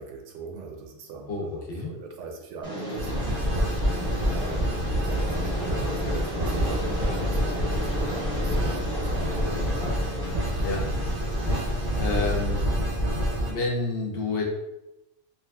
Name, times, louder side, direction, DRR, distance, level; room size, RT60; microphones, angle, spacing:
voice 1, 0.0-3.2 4.1-9.6, right 4 dB, 80° right, 2 dB, 0.9 m, -40 dB
voice 2, 1.3-1.9 10.6-10.8 12.0-12.7 13.5-14.4, left 3 dB, 65° left, 0 dB, 0.7 m, -29 dB
Train, 2.6-12.6, left 1 dB, 5° left, 0.7 m, -35 dB
sound 1, 3.0-13.5, equal, 45° right, 0.6 m, -27 dB
2.9 x 2.4 x 2.2 m, 0.92 s
omnidirectional pair, 1.2 m